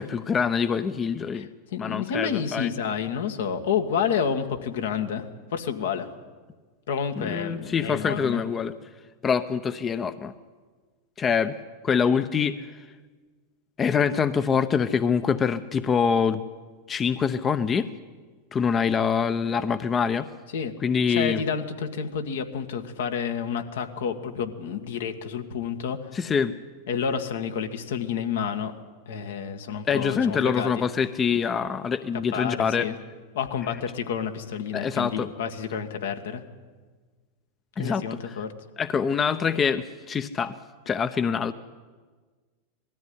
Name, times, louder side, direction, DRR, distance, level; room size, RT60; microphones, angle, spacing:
voice 1, 0.0-1.5 1.8-2.7 7.2-8.7 9.2-10.3 11.2-11.5 11.8-12.7 13.8-16.4 16.9-17.9 18.5-20.3 20.8-21.4 26.1-26.5 29.9-32.9 33.6-33.8 34.7-35.3 37.8-38.4 38.8-40.5 40.9-41.5, left 6 dB, 25° left, 12 dB, 0.8 m, -25 dB
voice 2, 1.7-6.1 6.9-8.4 20.5-20.7 21.1-26.0 26.9-28.7 29.1-30.8 32.3-33.0 33.3-36.4 37.8-38.5, left 7 dB, 70° left, 7 dB, 1.7 m, -29 dB
20.0 x 14.0 x 9.6 m, 1.4 s
hypercardioid pair, 95°, 0 cm